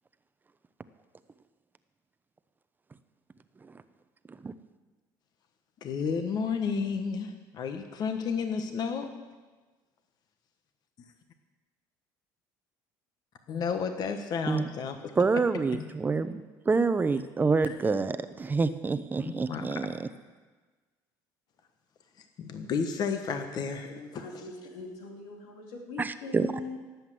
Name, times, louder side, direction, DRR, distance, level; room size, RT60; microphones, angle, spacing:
voice 1, 5.8-9.1 13.5-15.1 15.8-15.9 17.7-17.8 19.3-20.0 22.4-24.0, left 5 dB, 50° left, 6 dB, 1.3 m, -32 dB
voice 2, 15.2-19.9 26.0-26.5, right 4 dB, 20° right, 12 dB, 0.7 m, -27 dB
voice 3, 23.8-26.8, left 2 dB, 85° left, 0 dB, 3.2 m, -41 dB
17.5 x 8.1 x 7.6 m, 1.3 s
supercardioid pair, 105°, 9 cm